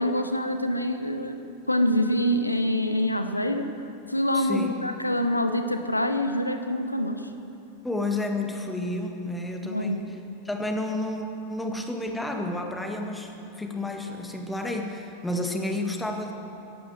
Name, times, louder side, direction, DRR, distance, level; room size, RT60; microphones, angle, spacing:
voice 1, 0.0-3.7 4.1-7.2 9.6-10.0, equal, 85° left, 8 dB, 0.8 m, -25 dB
voice 2, 4.3-4.8 7.8-10.2 10.5-16.3, left 2 dB, 5° left, 3 dB, 1.8 m, -31 dB
15.0 x 11.0 x 7.8 m, 2.8 s
figure-of-eight pair, 90°, 0 cm